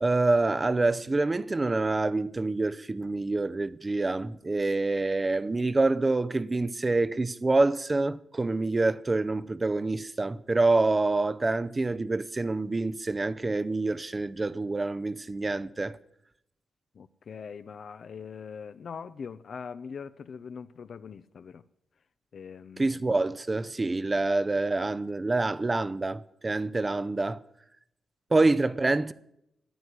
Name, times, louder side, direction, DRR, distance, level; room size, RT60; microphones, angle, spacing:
voice 1, 0.0-16.0 22.8-27.4 28.3-29.1, right 2 dB, 20° right, 0.6 m, -26 dB
voice 2, 17.0-21.6 22.3-23.0 24.2-24.3, left 6 dB, 55° left, 0.6 m, -42 dB
14.5 x 10.0 x 9.6 m
wide cardioid pair, 140°, 0 cm